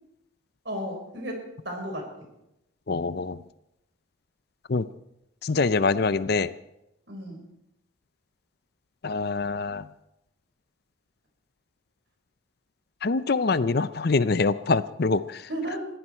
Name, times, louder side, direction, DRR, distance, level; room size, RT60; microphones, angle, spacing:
voice 1, 0.6-2.1 7.1-7.4 15.5-15.9, equal, 55° right, 2 dB, 4.8 m, -33 dB
voice 2, 2.9-3.4 4.7-4.9 5.4-6.5 9.0-9.9 13.0-15.5, left 4 dB, 50° left, 15 dB, 0.6 m, -24 dB
21.0 x 15.5 x 4.4 m, 0.86 s
head